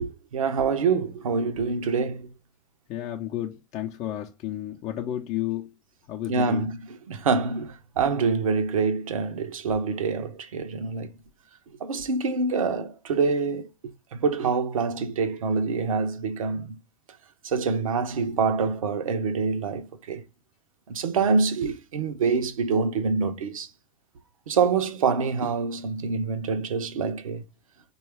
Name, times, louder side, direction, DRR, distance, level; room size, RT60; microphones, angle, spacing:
voice 1, 0.0-2.3 6.3-6.8 7.1-11.1 11.8-13.7 14.1-16.8 17.4-20.2 20.9-23.7 24.5-27.4, right 5 dB, 80° right, 0.6 m, -26 dB
voice 2, 2.9-5.7 6.1-6.7, left 12 dB, 40° left, 0.5 m, -32 dB
4.5 x 2.3 x 3.2 m
hypercardioid pair, 85°, 17 cm